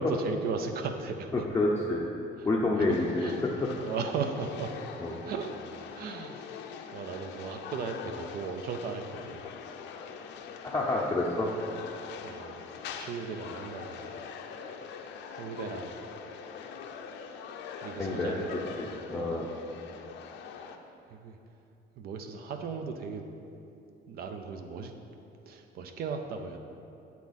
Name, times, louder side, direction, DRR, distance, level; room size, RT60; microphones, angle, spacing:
voice 1, 0.0-1.5 2.4-3.4 3.8-4.7 5.1-5.5 5.9-6.6 6.9-9.5 12.2-12.6 13.0-14.1 15.3-16.0 17.8-18.7 19.1-19.4 21.1-21.4 22.0-23.2 24.1-24.9 25.5-26.6, right 5 dB, 50° right, 6 dB, 0.6 m, -37 dB
voice 2, 1.3-2.1 2.4-3.5 5.0-5.2 10.7-11.5 18.0-18.4 18.8-19.5, left 2 dB, 15° left, -4 dB, 0.6 m, -28 dB
sound 1, 2.9-20.8, left 6 dB, 70° left, 0.6 m, -43 dB
8.4 x 8.4 x 4.1 m, 2.7 s
cardioid pair, 160°, 19 cm